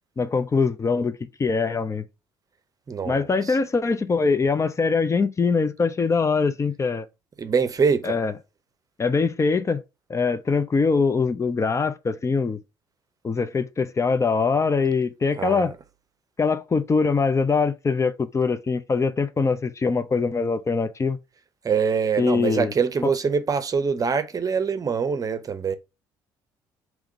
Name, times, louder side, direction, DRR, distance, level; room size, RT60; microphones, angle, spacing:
voice 1, 0.2-2.0 3.0-7.1 8.0-8.3 9.0-9.8 10.1-12.6 13.2-15.7 16.4-21.2 22.2-22.7, left 4 dB, 30° left, 0.6 m, -23 dB
voice 2, 2.9-3.5 7.4-8.2 15.4-15.7 21.6-25.7, right 6 dB, 35° right, 0.7 m, -24 dB
3.6 x 3.0 x 4.8 m
hypercardioid pair, 55°, 10 cm